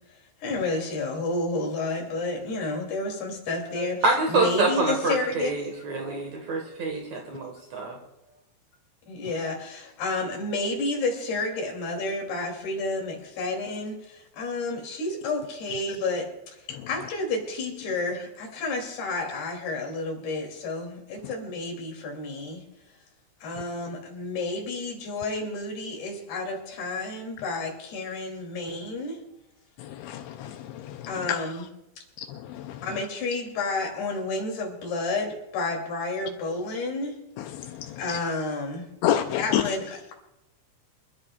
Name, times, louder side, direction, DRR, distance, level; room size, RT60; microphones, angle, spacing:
voice 1, 0.1-5.5 9.1-22.6 23.4-29.2 31.1-31.7 32.8-37.2 38.0-38.9 39.4-40.1, left 3 dB, 55° left, 0 dB, 4.5 m, -31 dB
voice 2, 3.7-7.9, right 3 dB, 80° right, 1 dB, 1.5 m, -26 dB
voice 3, 30.0-31.0 32.3-32.7 37.7-38.0 39.0-39.6, left 11 dB, 85° left, 6 dB, 2.6 m, -28 dB
26.5 x 12.5 x 2.4 m, 0.89 s
omnidirectional pair, 5.7 m